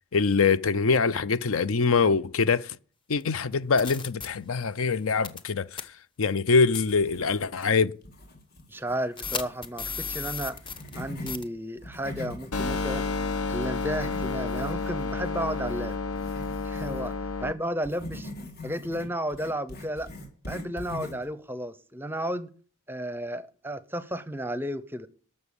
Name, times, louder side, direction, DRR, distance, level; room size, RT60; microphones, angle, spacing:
voice 1, 0.1-2.8 3.1-5.7 6.2-7.9, left 4 dB, 65° left, 0.6 m, -24 dB
sound 1, 3.1-3.2 3.8-4.3 5.2-5.5 5.7-5.8 6.7-6.9 7.6-7.7 9.2-11.0 11.3-11.4, left 5 dB, 20° left, 0.9 m, -34 dB
sound 2, 6.9-7.7 8.0-11.4 11.7-17.1 17.8-21.3, left 2 dB, 45° left, 3.6 m, -43 dB
voice 2, 8.7-10.6 11.0-13.1 13.5-16.0 16.6-17.1 17.4-18.3 18.6-20.1 20.5-22.5 22.9-25.1, equal, 10° right, 0.7 m, -33 dB
sound 3, 12.5-17.5, left 4 dB, 85° left, 1.0 m, -30 dB
12.5 x 6.9 x 9.9 m
head